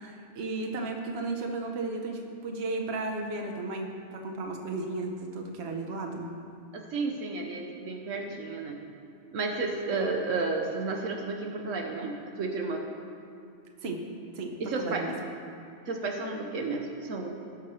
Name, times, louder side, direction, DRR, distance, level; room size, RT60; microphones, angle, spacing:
voice 1, 0.0-6.3 13.8-14.0 14.3-15.1, right 3 dB, 55° right, 2 dB, 1.1 m, -34 dB
voice 2, 6.7-8.8 9.3-12.9 14.6-15.1 15.9-17.5, right 3 dB, 80° right, 2 dB, 1.2 m, -32 dB
17.5 x 6.3 x 3.2 m, 2.4 s
omnidirectional pair, 1.3 m